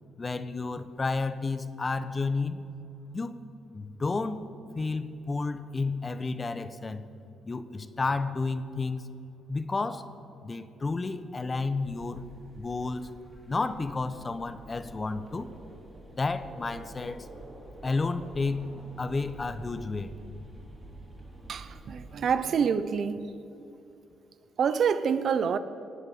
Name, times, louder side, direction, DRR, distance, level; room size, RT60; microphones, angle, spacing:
voice 1, 0.2-2.6 3.1-3.4 3.7-4.4 4.7-7.1 7.5-9.1 9.5-10.1 10.4-12.3 12.6-13.1 13.5-15.5 16.1-17.3 17.8-18.7 19.0-20.1, left 3 dB, 30° left, 0.9 m, -31 dB
sound 1, 11.8-22.4, right 1 dB, 25° right, 4.0 m, -48 dB
voice 2, 21.5-23.3 24.6-25.6, right 6 dB, 60° right, 0.7 m, -27 dB
18.0 x 7.9 x 7.9 m
cardioid pair, 75°, 0 cm